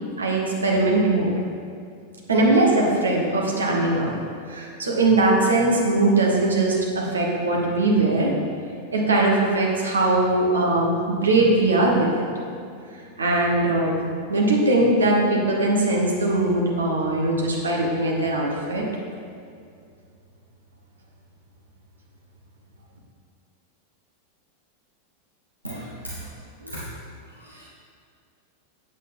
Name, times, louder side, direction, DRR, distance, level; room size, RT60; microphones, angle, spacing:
voice 1, 0.2-1.4 2.3-4.1 4.5-8.3 8.9-12.2 13.2-14.0 14.3-18.9, right 2 dB, 70° right, -2 dB, 1.5 m, -21 dB
voice 2, 25.6-26.1 26.6-26.8 27.4-27.6, right 1 dB, 85° right, -6 dB, 1.0 m, -36 dB
8.2 x 8.0 x 3.7 m, 2.3 s
figure-of-eight pair, 90°, 0 cm